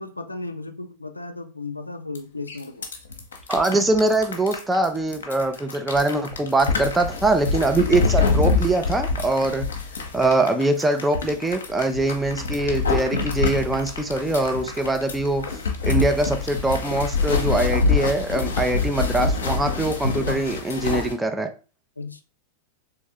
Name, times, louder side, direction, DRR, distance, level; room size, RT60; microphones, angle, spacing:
voice 1, 0.0-2.9 4.2-4.4 20.3-20.4 22.0-22.2, left 3 dB, 85° left, 0.4 m, -35 dB
sound 1, 2.1-2.2 2.5-21.1, left 4 dB, 65° left, 0.8 m, -25 dB
voice 2, 3.5-9.7 10.1-15.4 15.8-21.5, right 2 dB, 10° right, 0.5 m, -23 dB
3.6 x 3.1 x 3.3 m
figure-of-eight pair, 90°, 0 cm